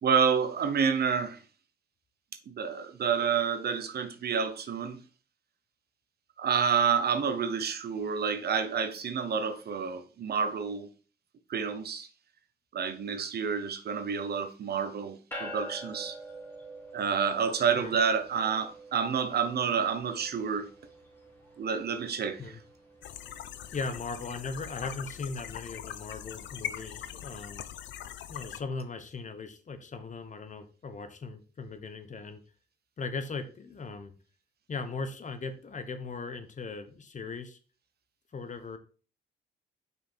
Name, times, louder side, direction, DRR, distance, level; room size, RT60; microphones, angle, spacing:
voice 1, 0.0-1.4 2.5-5.0 6.4-10.9 11.5-12.1 12.7-16.2 16.9-20.7 21.6-22.4, right 6 dB, 55° right, 1.0 m, -29 dB
sound 1, 15.3-26.9, right 1 dB, 10° left, 2.3 m, -48 dB
sound 2, 23.0-28.6, left 11 dB, 70° left, 0.6 m, -41 dB
voice 2, 23.7-27.7 28.3-32.4 33.0-34.1 34.7-37.6 38.3-38.8, left 4 dB, 40° left, 1.1 m, -38 dB
5.5 x 4.7 x 4.5 m
cardioid pair, 90°, 20 cm